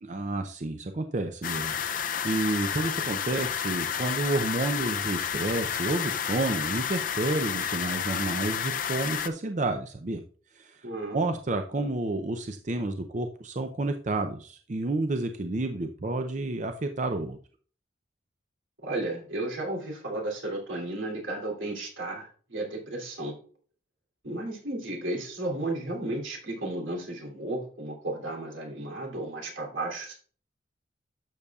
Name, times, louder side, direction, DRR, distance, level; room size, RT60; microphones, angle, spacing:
voice 1, 0.0-10.2 10.5-17.4, right 2 dB, 40° right, 7 dB, 0.5 m, -30 dB
sound 1, 1.4-9.3, left 8 dB, 45° left, 0.5 m, -31 dB
voice 2, 10.8-11.2 18.8-23.4 24.2-30.1, right 2 dB, 85° right, 0 dB, 3.1 m, -33 dB
12.0 x 6.9 x 2.4 m, 0.43 s
head